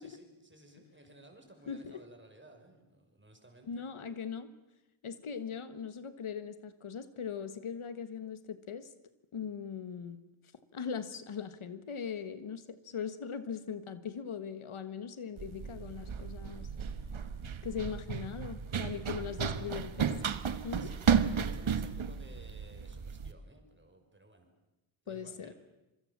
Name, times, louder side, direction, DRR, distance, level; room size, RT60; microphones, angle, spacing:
voice 1, 0.0-3.8 18.1-18.4 18.8-19.3 20.8-24.5 25.0-25.5, right 1 dB, 25° right, 4 dB, 5.9 m, -57 dB
voice 2, 1.7-2.0 3.7-4.5 5.0-8.9 9.3-10.2 10.7-16.7 17.6-20.1 20.6-20.9 25.1-25.5, left 7 dB, 80° left, 12 dB, 1.5 m, -40 dB
Run, 15.4-23.3, right 7 dB, 75° right, 1.3 m, -33 dB
26.5 x 23.0 x 7.3 m, 0.97 s
wide cardioid pair, 80°, 48 cm